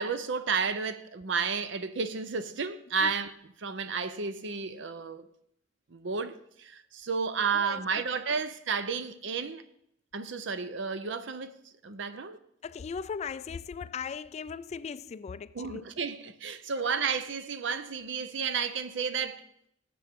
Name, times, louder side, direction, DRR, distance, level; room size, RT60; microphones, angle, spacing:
voice 1, 0.0-3.3 3.6-5.3 5.9-9.6 10.1-11.5 11.8-12.4 15.5-19.4, right 5 dB, 70° right, 0.7 m, -32 dB
voice 2, 12.6-15.8 17.0-17.1, left 6 dB, 35° left, 0.3 m, -38 dB
18.0 x 7.6 x 3.6 m
head